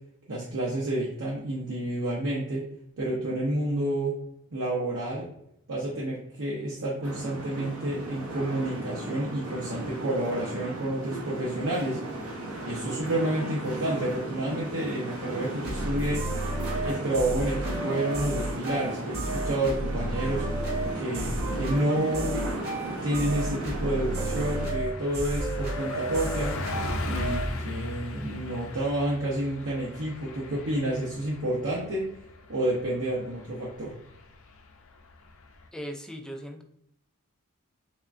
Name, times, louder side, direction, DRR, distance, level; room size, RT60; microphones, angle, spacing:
voice 1, 0.3-2.6 3.0-4.2 4.5-5.3 5.7-12.0 12.6-16.2 16.8-20.5 20.9-22.4 22.8-26.6 27.0-32.1 32.5-33.9, right 1 dB, 65° right, -5 dB, 0.7 m, -29 dB
sound 1, 7.0-24.7, right 2 dB, 90° right, 1.0 m, -36 dB
sound 2, 15.6-27.5, right 1 dB, 45° right, 1.1 m, -32 dB
Car passing by, 20.2-20.6 21.0-21.1 21.4-35.7, left 2 dB, 65° left, 0.5 m, -39 dB
voice 2, 35.7-36.6, equal, 5° left, 2 dB, 0.4 m, -38 dB
3.5 x 3.3 x 2.5 m, 0.75 s
head